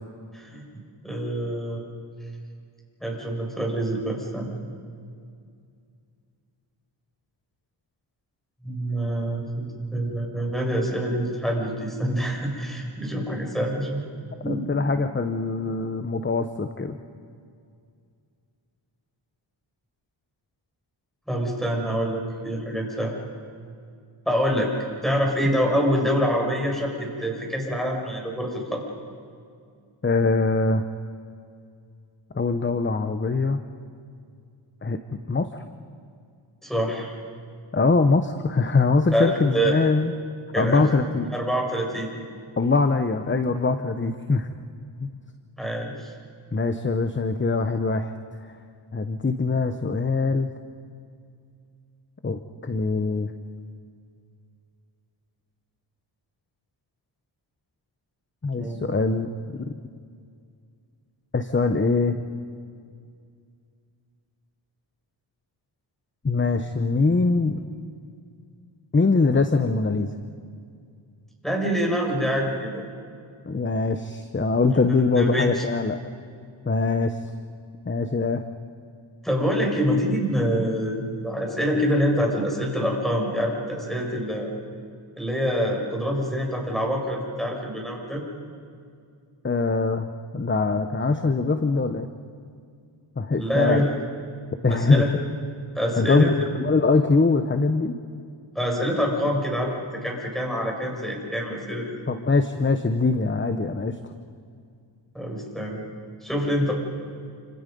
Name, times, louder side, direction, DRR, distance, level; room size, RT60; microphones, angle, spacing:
voice 1, 0.3-0.7 1.0-1.8 3.0-4.5 8.6-14.0 14.4-14.7 21.3-23.1 24.2-24.7 25.0-28.8 36.6-37.1 39.1-39.8 40.5-40.8 41.3-42.1 45.6-46.1 58.5-58.9 71.4-72.8 74.9-75.6 79.2-84.5 85.2-88.2 93.4-93.9 94.7-95.1 95.7-96.3 98.5-99.7 100.0-102.0 105.1-105.8 106.2-106.7, equal, ahead, -1 dB, 6.7 m, -26 dB
voice 2, 14.4-17.0 30.0-30.8 32.3-33.6 34.8-35.0 35.3-35.5 37.7-40.1 40.6-41.3 42.6-44.5 45.0-45.2 46.5-48.1 48.4-48.5 48.9-50.5 52.2-53.3 58.4-59.3 59.6-59.7 61.3-62.2 66.2-67.6 68.9-70.1 73.5-76.0 76.7-77.2 77.8-78.4 89.4-92.1 93.2-93.9 94.6-95.1 96.0-98.0 102.1-104.0, left 3 dB, 25° left, 9 dB, 1.0 m, -23 dB
29.5 x 26.5 x 5.4 m, 2.3 s
cardioid pair, 85°, 50 cm